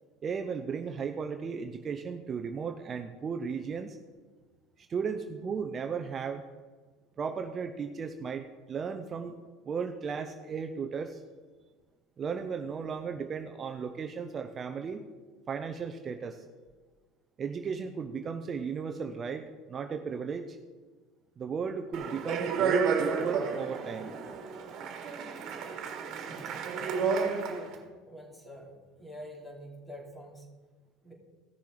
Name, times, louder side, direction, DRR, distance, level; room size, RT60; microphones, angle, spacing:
voice 1, 0.2-4.0 4.8-6.4 7.2-9.3 9.6-11.2 12.2-15.1 15.5-16.4 17.4-20.6 21.4-24.1, right 6 dB, 35° right, 6 dB, 0.7 m, -35 dB
Speech, 21.9-27.7, right 5 dB, 55° right, 1.7 m, -31 dB
voice 2, 27.4-30.5 31.0-31.1, equal, 15° left, 0 dB, 3.0 m, -46 dB
15.0 x 6.8 x 4.9 m, 1.4 s
supercardioid pair, 105°, 0 cm